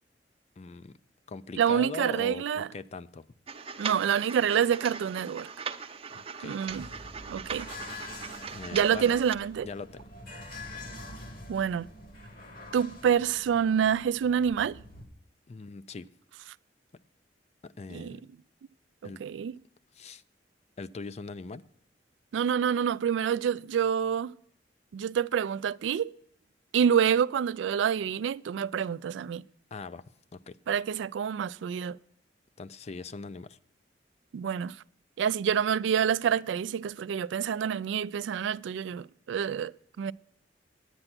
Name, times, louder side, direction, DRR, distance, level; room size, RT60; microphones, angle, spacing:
voice 1, 0.6-1.0 1.3-3.3 3.8-3.9 6.1-6.6 8.5-9.2 9.6-10.0 15.5-16.1 17.6-18.2 19.0-19.2 19.9-20.2 20.8-21.6 29.7-30.0 30.3-30.6 32.6-33.6, left 3 dB, 40° left, 0.4 m, -41 dB
voice 2, 1.6-2.7 3.8-5.5 6.4-6.9 7.3-7.7 8.7-9.7 11.5-11.9 12.7-14.8 17.9-18.2 19.0-19.6 22.3-24.3 24.9-26.1 26.7-29.4 30.7-32.0 34.3-34.8 35.2-40.1, right 8 dB, 90° right, 0.3 m, -27 dB
sound 1, 3.5-9.3, right 6 dB, 35° right, 0.6 m, -40 dB
sound 2, 6.7-15.1, left 2 dB, 55° left, 2.2 m, -46 dB
9.8 x 8.9 x 5.9 m
head